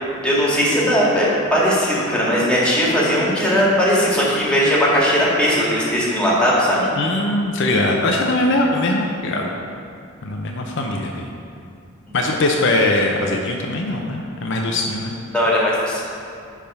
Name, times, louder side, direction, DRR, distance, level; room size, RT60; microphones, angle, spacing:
voice 1, 0.2-6.9 15.3-16.0, equal, 5° left, -6 dB, 1.7 m, -18 dB
voice 2, 7.0-9.5 10.2-11.3 12.1-15.1, left 2 dB, 65° left, 1 dB, 0.7 m, -21 dB
10.0 x 3.6 x 5.4 m, 2.4 s
head